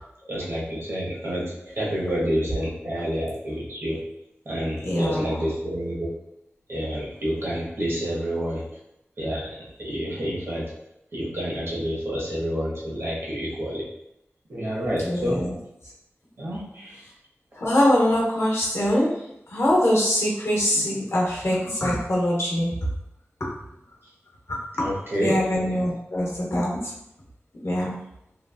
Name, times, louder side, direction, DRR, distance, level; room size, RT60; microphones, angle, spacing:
voice 1, 0.3-4.0 4.4-6.1 6.7-8.6 9.2-9.5 9.8-10.7 11.1-13.8 14.5-15.4 16.4-17.0 24.8-25.4, equal, 65° right, -6 dB, 1.0 m, -28 dB
voice 2, 4.8-5.3 15.0-15.5 17.5-19.1 19.5-22.7 23.4-23.5 24.5-24.9 25.2-26.9 27.6-28.0, left 1 dB, 70° left, -4 dB, 0.8 m, -23 dB
3.0 x 2.3 x 2.3 m, 0.85 s
wide cardioid pair, 70°, 5 cm